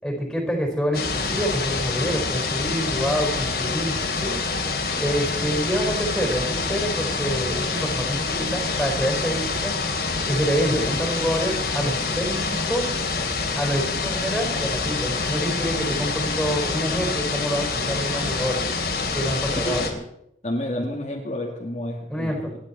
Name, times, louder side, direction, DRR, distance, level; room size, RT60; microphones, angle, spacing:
voice 1, 0.0-3.9 4.2-4.4 5.0-9.7 10.3-12.8 13.5-18.6 19.1-19.9 22.1-22.5, equal, 5° left, 2 dB, 4.5 m, -27 dB
sound 1, 0.9-19.9, left 4 dB, 60° left, 2.9 m, -26 dB
voice 2, 19.6-20.0 20.4-22.6, left 1 dB, 40° left, -2 dB, 2.2 m, -30 dB
28.0 x 11.0 x 4.3 m, 0.76 s
head